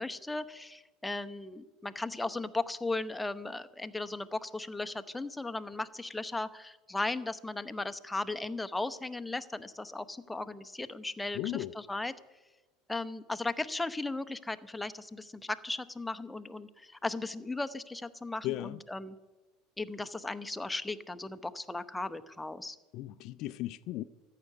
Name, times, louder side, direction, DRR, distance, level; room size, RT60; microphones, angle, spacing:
voice 1, 0.0-12.1 12.9-19.2 19.8-22.8, left 2 dB, 10° left, 0.8 m, -36 dB
voice 2, 11.4-11.7 18.4-18.8 22.9-24.0, left 15 dB, 55° left, 0.4 m, -36 dB
14.5 x 6.8 x 9.6 m
hypercardioid pair, 75°, 0 cm